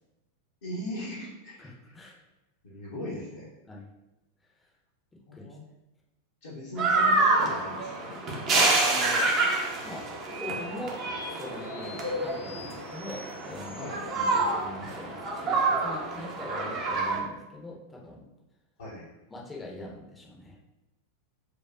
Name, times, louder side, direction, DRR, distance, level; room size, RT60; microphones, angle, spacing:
voice 1, 0.6-2.1 2.6-3.5 5.3-5.6 6.4-8.2 13.8-14.0 18.8-19.1, left 1 dB, 65° left, -9 dB, 1.0 m, -39 dB
voice 2, 1.6-2.2 3.7-3.9 4.6-4.7 5.1-5.5 8.5-11.0 11.3-13.8 14.1-18.3 19.3-20.6, left 1 dB, 10° left, -4 dB, 0.7 m, -42 dB
sound 1, 6.8-17.2, right 3 dB, 35° right, 0.7 m, -27 dB
sound 2, 8.6-14.5, right 1 dB, 70° right, 0.5 m, -45 dB
4.5 x 2.3 x 2.6 m, 1.0 s
figure-of-eight pair, 90°, 0 cm